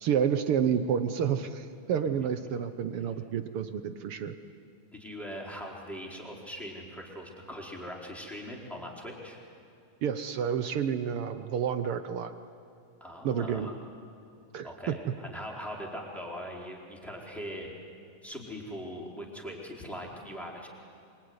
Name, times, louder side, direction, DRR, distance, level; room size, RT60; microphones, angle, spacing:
voice 1, 0.0-4.4 10.0-12.3 13.2-13.7 14.5-15.0, right 8 dB, 70° right, 9 dB, 1.4 m, -29 dB
voice 2, 2.0-2.3 4.9-9.4 13.0-13.7 14.6-17.7 18.2-20.7, equal, ahead, -3 dB, 4.1 m, -41 dB
25.0 x 24.5 x 9.7 m, 2.4 s
omnidirectional pair, 3.5 m